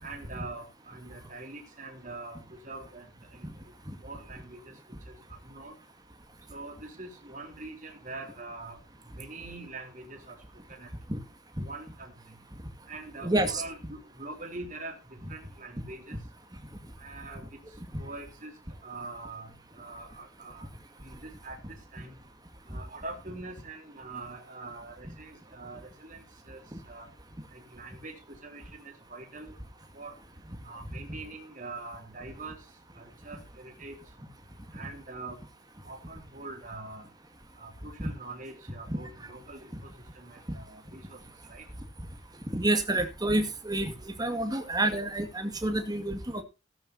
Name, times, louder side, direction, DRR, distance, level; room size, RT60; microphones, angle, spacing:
voice 1, 0.0-3.1 3.3-3.5 4.0-4.7 5.1-5.8 6.5-8.8 9.2-10.4 10.7-10.9 11.6-12.1 12.9-16.2 17.0-17.4 18.0-18.5 18.8-19.5 19.8-20.7 21.0-22.1 22.7-26.6 26.9-27.1 27.5-29.5 29.9-30.1 30.6-32.6 33.0-34.0 34.7-35.4 35.8-37.1 37.6-41.2 41.5-41.6, right 3 dB, 40° right, 4 dB, 3.6 m, -43 dB
voice 2, 13.2-13.6 42.5-43.9 44.2-46.4, right 1 dB, 20° right, 7 dB, 2.1 m, -28 dB
15.5 x 12.5 x 2.8 m, 0.29 s
head